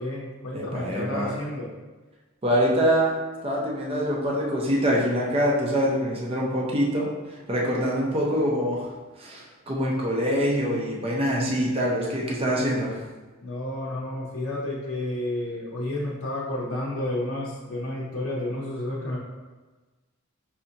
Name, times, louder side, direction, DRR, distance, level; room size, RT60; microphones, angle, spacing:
voice 1, 0.0-1.7 13.4-19.2, left 1 dB, 75° left, -5 dB, 0.6 m, -31 dB
voice 2, 0.5-1.3 2.4-13.0, equal, 30° right, -3 dB, 0.6 m, -25 dB
5.6 x 2.4 x 2.7 m, 1.3 s
head